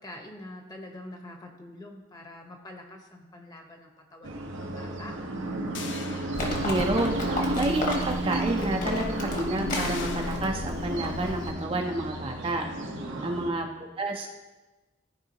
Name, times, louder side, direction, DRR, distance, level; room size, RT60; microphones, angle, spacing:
voice 1, 0.0-5.1 12.9-13.4, left 1 dB, 20° left, 2 dB, 1.0 m, -45 dB
sound 1, 4.2-13.5, right 1 dB, 85° right, 1.0 m, -33 dB
sound 2, 5.7-7.0 7.5-7.6 9.7-10.4, left 5 dB, 75° left, 0.7 m, -40 dB
Livestock farm animals working animals, 6.3-11.5, left 1 dB, 45° left, 1.4 m, -33 dB
voice 2, 6.6-7.2 7.5-12.6 13.2-14.3, right 2 dB, 30° right, 2 dB, 0.5 m, -29 dB
14.0 x 4.8 x 2.8 m, 1.1 s
head